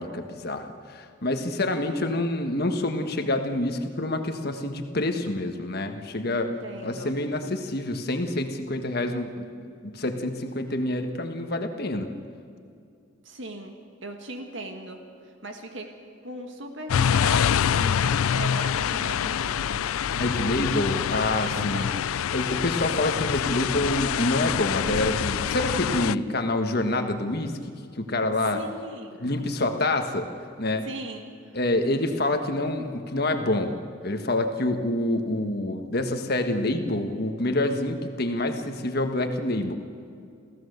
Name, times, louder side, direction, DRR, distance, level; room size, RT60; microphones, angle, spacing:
voice 1, 0.0-6.5 6.8-12.1 20.1-21.9 22.3-27.6 28.0-28.6 29.2-30.3 30.6-30.9 31.5-33.7 34.0-39.7, left 1 dB, 50° left, 6 dB, 1.5 m, -27 dB
voice 2, 6.4-7.2 13.2-13.8 14.0-15.9 16.2-19.8 21.5-22.1 28.5-29.3 30.8-31.2, right 2 dB, 60° right, 4 dB, 1.9 m, -39 dB
sound 1, 16.9-26.1, left 8 dB, 85° left, 0.4 m, -25 dB
28.0 x 15.5 x 6.7 m, 2.5 s
head